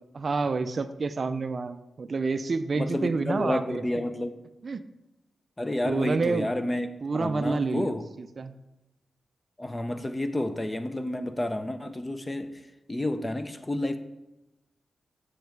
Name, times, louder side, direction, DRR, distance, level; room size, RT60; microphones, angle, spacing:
voice 1, 0.2-4.0 4.6-4.9 5.8-6.5 7.0-8.5, right 4 dB, 45° right, 11 dB, 0.4 m, -29 dB
voice 2, 2.8-4.3 5.6-8.0 9.6-12.6 12.9-14.0, left 1 dB, 15° left, 9 dB, 0.5 m, -30 dB
7.3 x 6.4 x 4.6 m, 0.99 s
wide cardioid pair, 125°, 0 cm